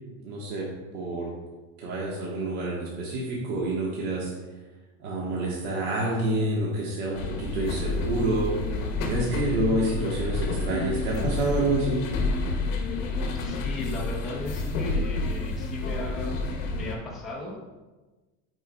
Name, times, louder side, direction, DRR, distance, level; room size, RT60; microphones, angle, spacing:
voice 1, 0.2-0.7 0.9-1.3 1.8-4.3 5.0-8.5 9.1-12.0, right 2 dB, 75° right, -4 dB, 1.4 m, -28 dB
sound 1, 7.1-16.9, left 3 dB, 60° left, 1.0 m, -29 dB
voice 2, 12.9-16.4 16.7-17.7, left 1 dB, ahead, -6 dB, 0.4 m, -37 dB
9.3 x 4.6 x 2.3 m, 1.2 s
supercardioid pair, 165°, 44 cm